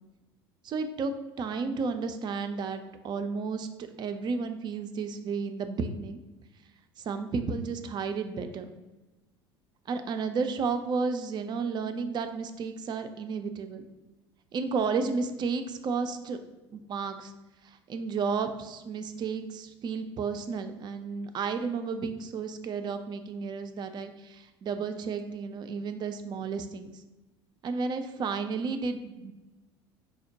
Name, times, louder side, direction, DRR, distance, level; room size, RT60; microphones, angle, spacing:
voice 1, 0.6-1.1 1.4-6.2 7.0-8.7 9.9-13.8 14.5-16.4 16.7-17.3 17.6-26.9 27.6-29.3, right 5 dB, 30° right, 8 dB, 0.4 m, -32 dB
5.2 x 2.1 x 2.8 m, 1.1 s
figure-of-eight pair, 65°, 14 cm